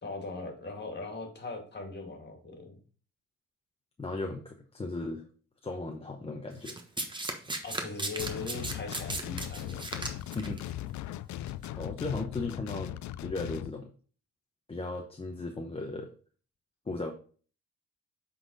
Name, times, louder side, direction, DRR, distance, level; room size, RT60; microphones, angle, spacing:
voice 1, 0.0-2.8 7.6-9.9, left 3 dB, 35° left, 3 dB, 2.2 m, -40 dB
voice 2, 4.0-5.3 5.6-6.8 10.3-10.6 11.7-13.9 14.7-16.1 16.9-17.1, left 2 dB, 20° left, 2 dB, 0.8 m, -36 dB
Domestic sounds home sounds, 6.7-10.6 11.5-11.7, right 2 dB, 15° right, 1.1 m, -36 dB
sound 1, 8.2-13.7, left 13 dB, 70° left, 0.4 m, -39 dB
7.7 x 4.0 x 4.0 m, 0.41 s
cardioid pair, 90°, 30 cm